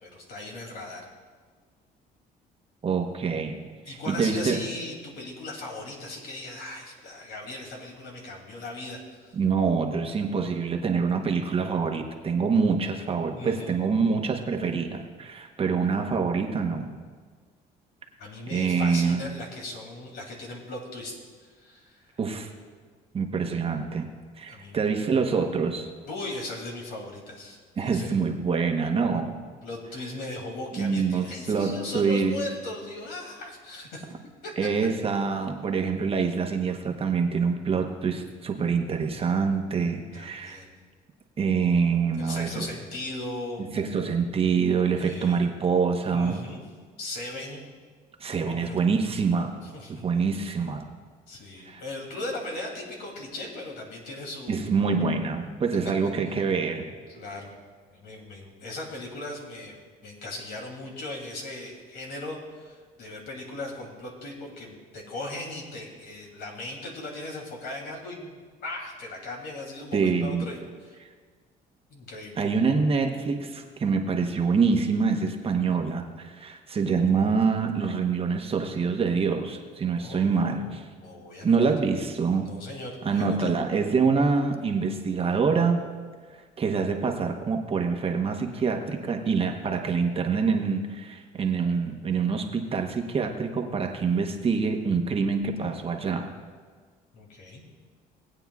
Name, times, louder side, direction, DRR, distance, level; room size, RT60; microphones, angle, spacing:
voice 1, 0.0-1.0 3.8-9.4 13.3-13.7 18.2-22.2 24.5-24.9 26.0-28.1 29.6-34.0 34.4-34.5 40.1-40.7 42.2-43.6 45.0-45.5 46.1-46.6 47.0-47.6 48.3-48.8 49.6-50.0 51.3-54.7 57.1-57.5 57.9-59.8 60.0-71.0 71.9-72.4 80.0-81.7 82.3-83.6 97.1-97.6, left 2 dB, 70° left, 0 dB, 2.8 m, -38 dB
voice 2, 2.8-3.6 3.9-4.6 9.3-16.9 18.5-19.2 22.2-22.5 23.1-24.1 24.4-25.9 27.8-29.4 30.8-32.4 34.6-40.6 41.4-42.7 43.6-46.4 48.2-49.5 50.0-50.9 51.6-51.8 54.5-56.8 69.9-70.4 72.4-80.9 81.4-82.5 83.0-85.8 86.6-96.3, right 5 dB, 35° right, 4 dB, 1.0 m, -25 dB
19.0 x 8.8 x 2.4 m, 1.5 s
cardioid pair, 110°, 17 cm